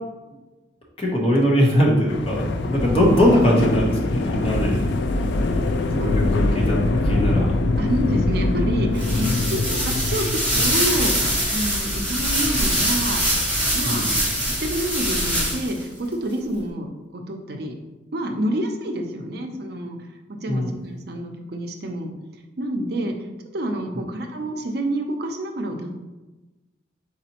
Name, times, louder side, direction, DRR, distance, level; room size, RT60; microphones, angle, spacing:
voice 1, 1.0-4.8 5.9-6.8 7.0-7.5 9.4-9.5 13.8-14.1 20.5-20.7, equal, 30° left, -2 dB, 0.9 m, -20 dB
sound 1, 2.1-14.9, left 2 dB, 60° left, 0.3 m, -24 dB
voice 2, 5.7-6.2 7.8-11.1 11.5-13.3 13.7-17.7 18.1-20.0 20.3-22.1 22.6-23.1 23.5-26.0, right 1 dB, 55° right, 3 dB, 0.5 m, -28 dB
sound 2, 8.9-15.8, equal, 10° left, 1.1 m, -23 dB
4.1 x 4.1 x 2.9 m, 1.1 s
head